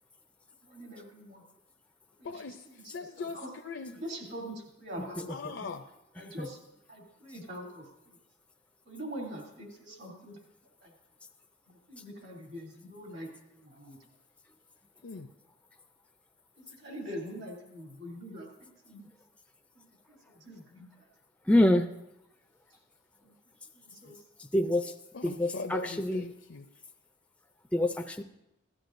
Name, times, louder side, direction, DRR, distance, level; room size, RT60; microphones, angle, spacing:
voice 1, 0.7-1.4 3.3-3.5 4.0-5.3 6.2-6.6 6.9-7.8 8.9-10.4 10.8-10.9 11.7-13.3 13.6-14.0 16.6-19.0 20.1-20.9 23.2-23.3 23.9-24.1, equal, 60° right, -1 dB, 2.8 m, -43 dB
voice 2, 2.2-3.9 5.3-5.8 15.0-15.3 25.1-26.6, left 4 dB, 70° left, 4 dB, 0.5 m, -40 dB
voice 3, 21.5-21.9 24.4-24.9 25.2-26.3 27.7-28.2, left 1 dB, 5° left, 5 dB, 0.4 m, -26 dB
16.0 x 12.0 x 2.6 m, 0.86 s
head